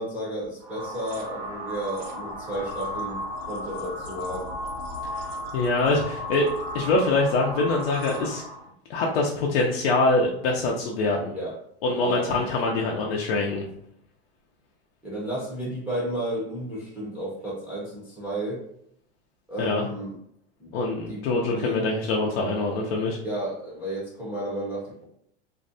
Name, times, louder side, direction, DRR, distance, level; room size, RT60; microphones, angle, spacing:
voice 1, 0.0-4.6 11.2-11.6 11.9-13.1 15.0-18.6 19.5-20.2 20.6-20.7 21.1-21.9 23.2-25.0, right 1 dB, 5° right, -7 dB, 0.6 m, -33 dB
sound 1, 0.6-8.7, equal, 70° right, 1.0 m, -35 dB
voice 2, 5.5-6.5 6.7-8.4 8.9-11.3 11.8-13.6 19.6-19.9 20.7-23.2, left 2 dB, 65° left, -1 dB, 0.5 m, -24 dB
2.5 x 2.1 x 2.6 m, 0.72 s
supercardioid pair, 140°, 31 cm